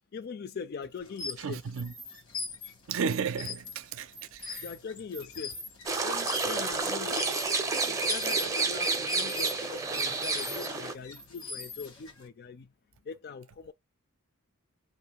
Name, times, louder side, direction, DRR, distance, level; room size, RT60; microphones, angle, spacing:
voice 1, 0.1-1.6 4.6-5.6 6.0-7.3 7.8-12.7 13.0-13.7, left 5 dB, 50° left, 0.4 m, -41 dB
sound 1, 1.0-12.3, left 4 dB, 80° left, 1.2 m, -42 dB
voice 2, 1.4-1.9 2.9-4.7, right 6 dB, 70° right, 0.4 m, -33 dB
sound 2, 5.9-10.9, right 4 dB, 15° right, 0.5 m, -30 dB
2.6 x 2.1 x 2.9 m
head